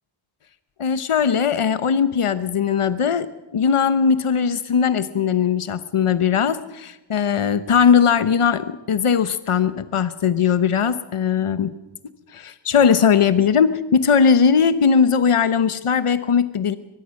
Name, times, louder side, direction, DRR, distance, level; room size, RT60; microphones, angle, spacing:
voice 1, 0.8-3.3 3.5-11.7 12.3-16.8, left 6 dB, 80° left, 12 dB, 0.9 m, -19 dB
23.5 x 20.5 x 6.4 m, 1.0 s
wide cardioid pair, 60°, 50 cm